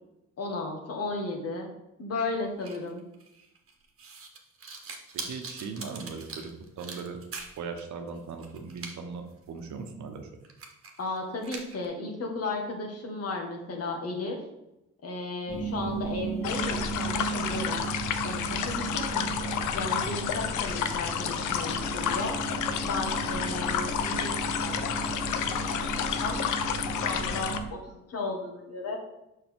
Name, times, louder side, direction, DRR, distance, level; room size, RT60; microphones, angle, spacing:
voice 1, 0.4-1.7 2.0-3.0 11.0-14.4 15.0-17.9 18.2-19.3 19.7-22.4 22.8-25.3 25.6-26.4 27.0-29.0, left 3 dB, 55° left, 2 dB, 1.7 m, -34 dB
sound 1, 2.6-7.8 8.1-8.9 9.3-9.4 9.9-10.0 10.4-11.1 11.4-11.9, right 4 dB, 45° right, 1.3 m, -42 dB
voice 2, 5.1-7.2 7.6-10.3, right 5 dB, 70° right, 5 dB, 1.1 m, -39 dB
sound 2, 15.5-27.7, right 4 dB, 20° left, 1.4 m, -35 dB
sound 3, 16.4-27.6, left 8 dB, 80° left, 0.6 m, -31 dB
6.2 x 5.6 x 3.7 m, 0.88 s
cardioid pair, 90°, 30 cm